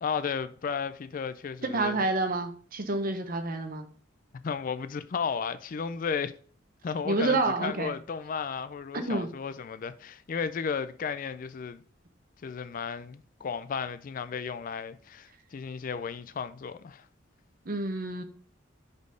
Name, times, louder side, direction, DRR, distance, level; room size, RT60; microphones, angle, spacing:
voice 1, 0.0-2.0 4.4-6.3 6.8-11.8 12.4-17.1, left 6 dB, 45° left, 0.4 m, -34 dB
voice 2, 1.6-3.9 7.0-7.9 8.9-9.3 17.7-18.2, right 2 dB, 45° right, 0.9 m, -28 dB
5.3 x 4.1 x 5.0 m
head